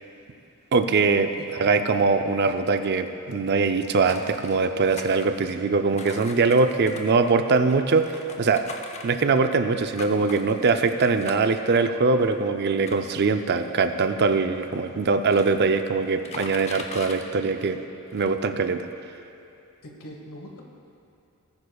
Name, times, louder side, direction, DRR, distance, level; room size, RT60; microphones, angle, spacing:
voice 1, 0.7-8.6 9.0-17.8 18.1-18.9, right 4 dB, 45° right, 8 dB, 0.4 m, -22 dB
voice 2, 1.4-1.9 19.8-20.6, equal, 70° left, 1 dB, 1.4 m, -42 dB
sound 1, 4.0-4.5 4.9-5.6 6.0-9.5 9.9-11.6 12.2-12.3 12.9-13.9 14.7-14.8 15.0-15.7 16.0-17.2 17.7-17.8 18.1-18.4, left 3 dB, 30° left, 0.6 m, -40 dB
19.0 x 9.6 x 2.3 m, 2.7 s
head